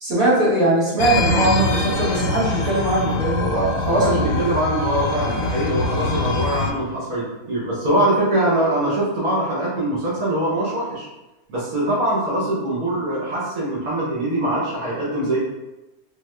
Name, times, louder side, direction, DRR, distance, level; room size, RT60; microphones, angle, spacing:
voice 1, 0.0-4.3, right 1 dB, 45° right, -8 dB, 1.4 m, -20 dB
sound 1, 1.0-6.7, left 2 dB, 90° left, 1.1 m, -23 dB
voice 2, 3.9-11.1 11.5-15.4, right 1 dB, 75° right, -8 dB, 1.4 m, -23 dB
3.4 x 2.1 x 3.2 m, 1.0 s
omnidirectional pair, 1.5 m